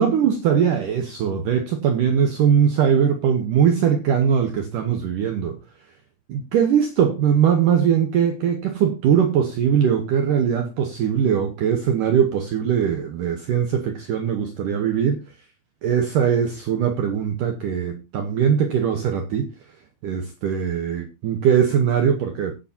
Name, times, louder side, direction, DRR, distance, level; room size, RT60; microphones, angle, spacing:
voice 1, 0.0-5.6 6.3-15.2 15.8-19.5 20.0-22.5, right 8 dB, 85° right, 1.8 m, -21 dB
16.5 x 8.4 x 2.8 m
omnidirectional pair, 5.4 m